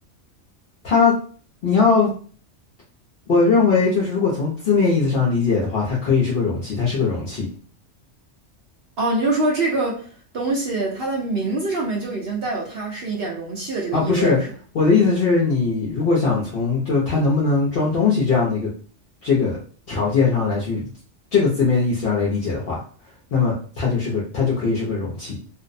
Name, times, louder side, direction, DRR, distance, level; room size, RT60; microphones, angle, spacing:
voice 1, 1.6-2.1 3.3-7.5 13.9-14.4 14.7-18.7 19.2-19.6 19.9-20.9 21.3-22.8 23.3-25.4, left 4 dB, 60° left, 0.8 m, -20 dB
voice 2, 9.0-14.5, right 2 dB, 60° right, 0.8 m, -25 dB
2.6 x 2.0 x 2.5 m
omnidirectional pair, 1.2 m